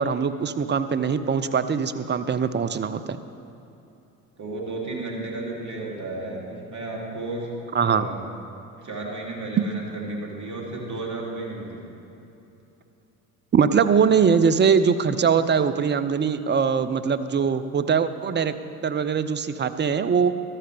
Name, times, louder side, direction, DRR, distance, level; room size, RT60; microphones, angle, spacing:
voice 1, 0.0-3.2 7.7-8.1 9.6-9.7 13.5-18.5 18.8-20.3, right 6 dB, 25° right, 12 dB, 0.6 m, -22 dB
voice 2, 4.4-7.5 7.8-8.2 8.8-11.9, right 2 dB, 40° right, -2 dB, 3.1 m, -33 dB
14.0 x 13.0 x 3.4 m, 2.9 s
hypercardioid pair, 60°, 43 cm